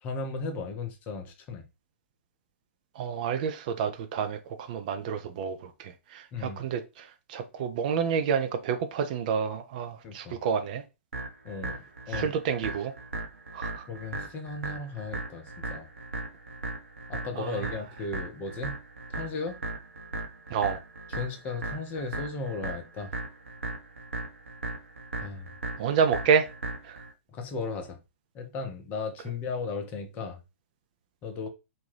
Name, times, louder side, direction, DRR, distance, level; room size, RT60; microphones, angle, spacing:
voice 1, 0.0-1.7 6.3-6.6 10.0-10.4 11.4-12.3 13.9-15.9 17.1-18.8 19.1-19.6 21.1-23.1 25.2-25.5 27.3-28.0 28.3-30.4 31.2-31.5, left 4 dB, 25° left, 0.6 m, -36 dB
voice 2, 3.0-10.8 12.1-12.9 13.5-13.9 17.4-17.7 20.5-20.8 25.8-26.5 26.8-27.0, right 6 dB, 40° right, 0.4 m, -29 dB
sound 1, 11.1-27.1, right 2 dB, 75° right, 0.8 m, -37 dB
2.7 x 2.2 x 3.1 m
figure-of-eight pair, 115°, 7 cm